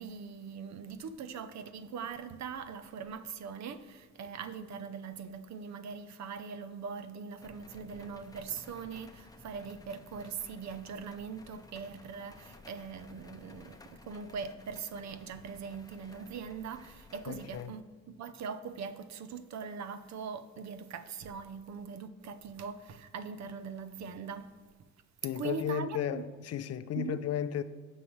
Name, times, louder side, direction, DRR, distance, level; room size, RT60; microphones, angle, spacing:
voice 1, 0.0-24.5 25.4-26.2 26.9-27.2, right 6 dB, 65° right, 0.7 m, -41 dB
sound 1, 7.4-17.7, left 2 dB, 10° left, 0.7 m, -55 dB
voice 2, 17.3-17.7 25.2-27.6, left 9 dB, 55° left, 0.5 m, -34 dB
16.0 x 5.6 x 3.2 m
cardioid pair, 90°, 30 cm